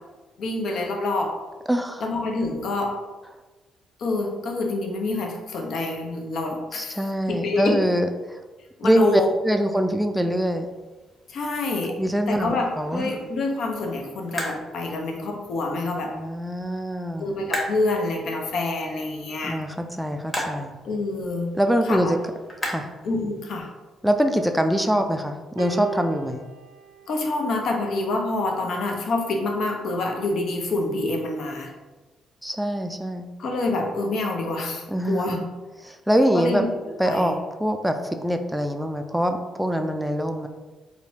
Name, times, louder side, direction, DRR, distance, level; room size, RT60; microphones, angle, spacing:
voice 1, 0.4-1.3 2.0-2.9 4.0-7.8 8.8-9.3 11.3-11.9 12.3-16.1 17.2-19.6 20.8-21.5 21.8-22.2 23.0-23.7 27.1-31.7 33.4-35.4 36.3-36.7 37.1-37.3, left 2 dB, 60° left, 1 dB, 0.6 m, -27 dB
voice 2, 1.7-2.0 6.7-8.4 8.8-10.7 12.0-13.1 16.1-17.3 19.5-20.8 21.6-22.2 22.6-22.9 24.0-26.4 32.4-33.3 34.9-35.5 35.8-36.6 37.0-38.0 38.2-40.5, equal, 5° right, 5 dB, 0.3 m, -24 dB
sound 1, 10.5-23.7, equal, 15° left, 1.1 m, -38 dB
sound 2, 25.6-28.1 29.1-29.2, right 7 dB, 80° right, 0.4 m, -38 dB
3.9 x 2.1 x 2.8 m, 1.2 s
hypercardioid pair, 45°, 0 cm